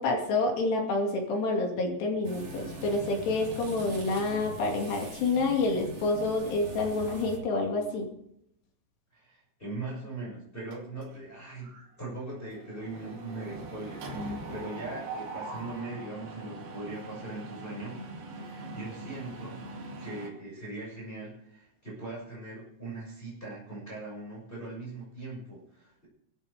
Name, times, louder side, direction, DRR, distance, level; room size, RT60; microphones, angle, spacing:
voice 1, 0.0-8.1, left 3 dB, 65° left, 1 dB, 4.4 m, -28 dB
sound 1, 2.2-7.4, right 2 dB, 35° right, 4.0 m, -42 dB
voice 2, 9.1-18.0 18.3-19.6 20.0-26.1, right 2 dB, 10° left, -5 dB, 6.4 m, -40 dB
Mechanisms, 10.7-11.3 11.6-11.9 12.1-20.3, right 2 dB, 65° right, 4.9 m, -41 dB
25.5 x 14.0 x 3.5 m, 0.75 s
omnidirectional pair, 5.3 m